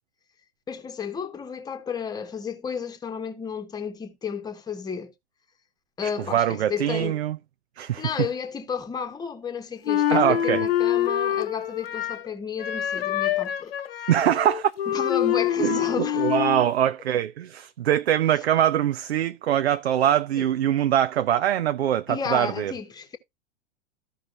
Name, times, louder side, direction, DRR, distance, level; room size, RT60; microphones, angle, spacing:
voice 1, 0.7-5.1 6.0-7.2 8.0-14.1 14.9-16.3 20.4-20.5 22.1-23.2, left 6 dB, 10° left, 1.2 m, -32 dB
voice 2, 6.3-7.4 7.8-8.1 10.1-10.6 14.1-14.7 15.6-22.7, right 11 dB, 65° right, 0.6 m, -23 dB
Wind instrument woodwind instrument, 9.9-12.3 12.6-16.7, left 10 dB, 55° left, 0.9 m, -25 dB
14.0 x 5.5 x 2.5 m
figure-of-eight pair, 105°, 35 cm